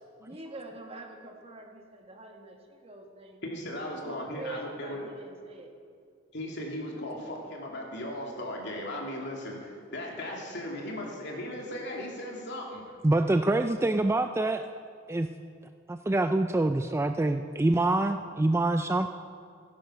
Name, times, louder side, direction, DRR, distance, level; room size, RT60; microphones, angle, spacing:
voice 1, 0.2-3.4 3.8-5.7, right 2 dB, 30° right, 3 dB, 1.5 m, -44 dB
voice 2, 3.4-5.1 6.3-12.9, left 1 dB, 60° left, -1 dB, 2.7 m, -37 dB
voice 3, 13.0-14.6 15.1-15.3 15.9-19.1, right 2 dB, 15° right, 8 dB, 0.4 m, -25 dB
16.0 x 10.5 x 6.4 m, 2.3 s
head